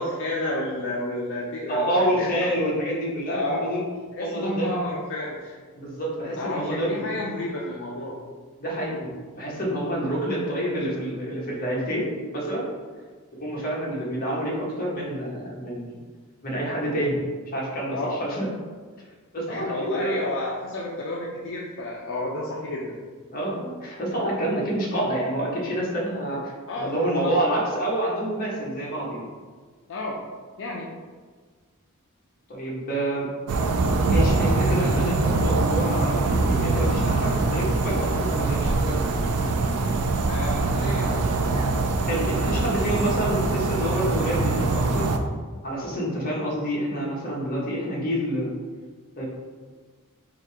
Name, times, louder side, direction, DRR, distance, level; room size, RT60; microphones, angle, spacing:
voice 1, 0.0-2.5 3.3-3.7 4.1-5.6 6.4-8.2 17.9-18.2 19.5-23.0 26.7-27.5 29.9-30.2 30.6-30.9 40.3-41.2, left 1 dB, 60° left, -4 dB, 0.5 m, -31 dB
voice 2, 1.7-3.8 4.2-4.9 5.7-7.1 8.6-12.7 13.4-16.0 16.4-17.3 17.5-18.5 19.3-20.2 23.3-29.3 32.5-33.3 34.1-39.0 42.1-45.1 45.6-48.5 49.2-49.3, right 1 dB, 40° left, -4 dB, 1.2 m, -28 dB
sound 1, 33.5-45.2, right 3 dB, 80° right, 0.5 m, -23 dB
3.9 x 2.7 x 4.6 m, 1.5 s
head